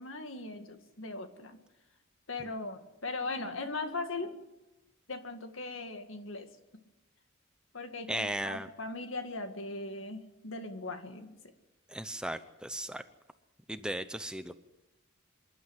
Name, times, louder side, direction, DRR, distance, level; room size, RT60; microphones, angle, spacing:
voice 1, 0.0-1.6 2.3-4.4 5.1-6.5 7.7-11.4, left 3 dB, 65° left, 7 dB, 2.0 m, -39 dB
voice 2, 8.1-8.7 11.9-13.0 13.7-14.6, right 1 dB, 5° right, 11 dB, 0.6 m, -36 dB
25.5 x 11.5 x 9.6 m, 1.0 s
head